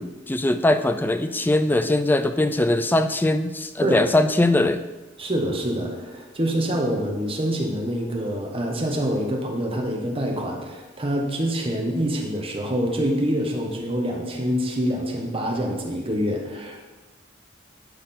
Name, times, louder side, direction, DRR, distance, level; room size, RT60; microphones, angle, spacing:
voice 1, 0.0-4.8, left 1 dB, 10° left, 9 dB, 0.3 m, -21 dB
voice 2, 5.2-16.8, equal, 30° right, 1 dB, 1.2 m, -26 dB
11.0 x 4.1 x 4.3 m, 1.2 s
head